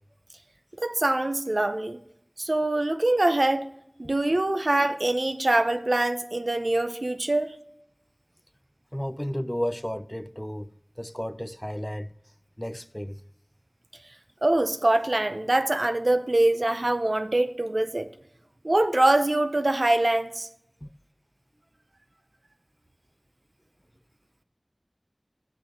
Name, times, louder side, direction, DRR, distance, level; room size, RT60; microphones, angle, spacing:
voice 1, 0.8-2.0 2.4-3.7 4.0-7.5 14.4-18.1 18.6-20.5, right 1 dB, 65° right, 0.6 m, -24 dB
voice 2, 8.9-10.7 11.0-12.1 12.6-13.2 20.8-20.9, equal, 10° left, 0.3 m, -32 dB
8.0 x 6.2 x 4.6 m
wide cardioid pair, 40°, 0 cm